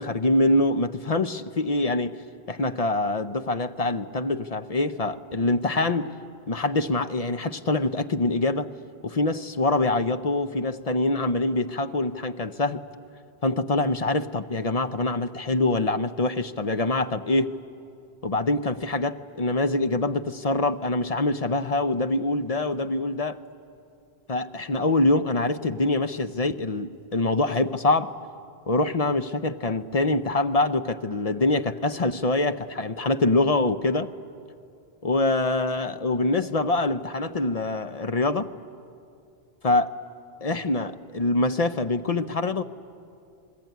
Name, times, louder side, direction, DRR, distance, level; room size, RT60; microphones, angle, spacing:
voice 1, 0.0-2.2 2.5-6.1 6.5-8.7 9.0-12.8 13.4-17.5 18.2-23.4 24.3-28.1 28.7-34.1 35.0-38.5 39.6-39.9 40.4-42.6, left 2 dB, 40° left, 10 dB, 0.7 m, -24 dB
27.0 x 21.0 x 9.3 m, 2.5 s
omnidirectional pair, 1.1 m